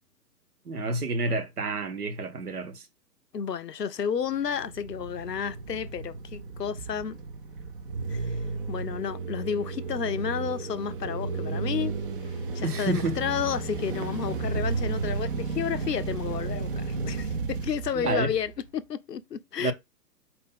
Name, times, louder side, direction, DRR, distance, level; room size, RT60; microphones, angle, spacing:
voice 1, 0.7-2.8 12.6-13.2 17.9-18.3 19.6-19.7, right 3 dB, 65° right, 1.0 m, -29 dB
voice 2, 3.3-7.2 8.1-8.4 8.7-11.9 12.5-19.7, left 7 dB, 80° left, 0.6 m, -31 dB
sound 1, 4.3-18.7, right 4 dB, 35° right, 0.7 m, -33 dB
4.4 x 2.5 x 3.6 m
figure-of-eight pair, 125°, 48 cm